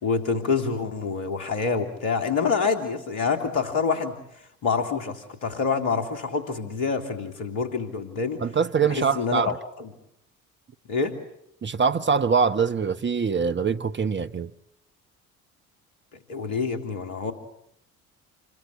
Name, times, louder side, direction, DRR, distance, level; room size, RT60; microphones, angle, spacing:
voice 1, 0.0-4.2 4.6-8.4 8.9-9.9 10.9-11.1 16.3-17.3, left 5 dB, 75° left, 3.3 m, -26 dB
voice 2, 8.4-9.6 11.6-14.5, right 6 dB, 25° right, 1.1 m, -23 dB
27.5 x 21.5 x 8.4 m
figure-of-eight pair, 50°, 41 cm